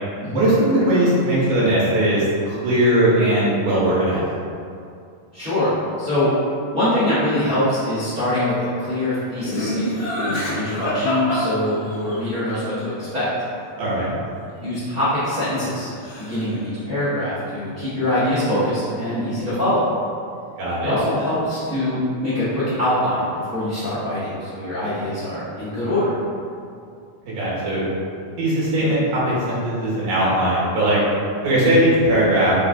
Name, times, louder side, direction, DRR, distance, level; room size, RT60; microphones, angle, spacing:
voice 1, 0.3-4.2 13.8-14.1 20.6-20.9 27.3-27.8 28.4-29.2 29.5-31.0 31.4-32.5, right 1 dB, 70° right, -7 dB, 2.5 m, -19 dB
voice 2, 5.3-6.3 6.7-13.3 14.6-15.9 16.2-19.8 20.8-26.1 31.5-31.8, left 1 dB, 55° right, -16 dB, 0.8 m, -23 dB
Laughter, 9.5-12.2 14.9-15.8 16.0-16.6, equal, 75° left, 2.8 m, -26 dB
6.1 x 2.4 x 3.6 m, 2.4 s
omnidirectional pair, 3.8 m